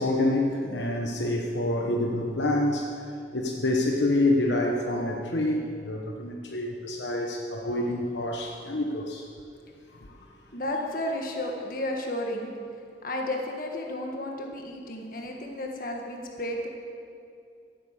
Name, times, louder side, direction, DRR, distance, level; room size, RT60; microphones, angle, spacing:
voice 1, 0.0-3.0 3.3-9.3 9.9-10.2, left 1 dB, 75° left, 1 dB, 1.1 m, -27 dB
voice 2, 10.5-12.5 13.0-16.7, left 1 dB, 50° left, 1 dB, 1.7 m, -32 dB
14.5 x 8.9 x 7.3 m, 2.4 s
head